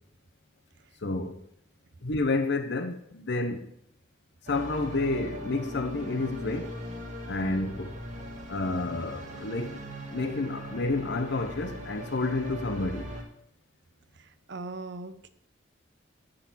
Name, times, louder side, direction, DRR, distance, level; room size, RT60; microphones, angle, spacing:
voice 1, 1.0-1.4 2.0-3.7 4.4-6.8 7.2-8.0 8.5-9.8 10.1-13.1, left 3 dB, 65° left, 0.8 m, -30 dB
sound 1, 4.5-13.2, equal, 40° right, 1.8 m, -40 dB
voice 2, 14.2-15.3, right 2 dB, 65° right, 0.8 m, -40 dB
11.5 x 3.9 x 7.5 m
head